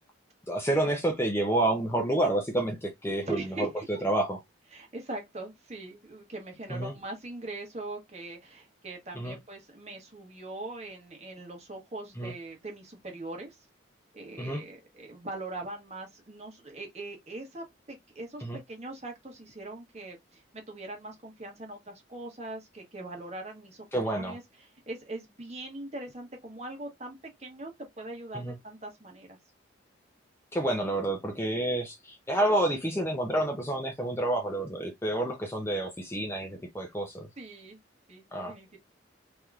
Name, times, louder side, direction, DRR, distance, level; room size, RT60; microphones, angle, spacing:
voice 1, 0.5-4.4 6.7-6.9 9.1-9.4 12.2-12.3 14.4-14.6 18.4-18.6 23.9-24.4 28.3-28.5 30.5-37.3 38.3-38.5, right 1 dB, 10° left, 0.6 m, -29 dB
voice 2, 3.3-4.0 4.7-13.6 14.1-20.4 20.7-29.4 37.4-37.8 38.1-38.8, right 2 dB, 35° right, 1.1 m, -41 dB
3.4 x 2.9 x 2.4 m
head